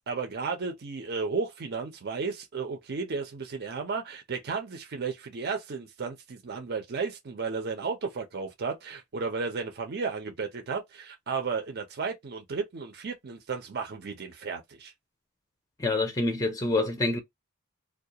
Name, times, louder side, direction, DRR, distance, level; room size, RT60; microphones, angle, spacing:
voice 1, 0.1-14.9, right 4 dB, 50° right, 0.6 m, -33 dB
voice 2, 15.8-17.2, left 2 dB, 15° left, 0.5 m, -26 dB
2.3 x 2.2 x 2.8 m
head